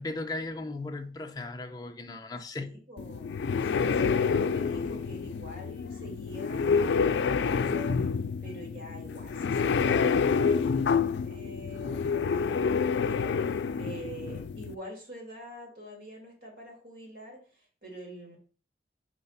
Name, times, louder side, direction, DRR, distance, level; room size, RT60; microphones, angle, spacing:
voice 1, 0.0-2.8, left 2 dB, 20° left, 0.5 m, -37 dB
voice 2, 2.5-8.0 8.4-18.4, equal, 65° right, 2.6 m, -45 dB
sound 1, 3.0-14.7, left 5 dB, 75° left, 0.4 m, -28 dB
4.7 x 3.9 x 5.6 m
head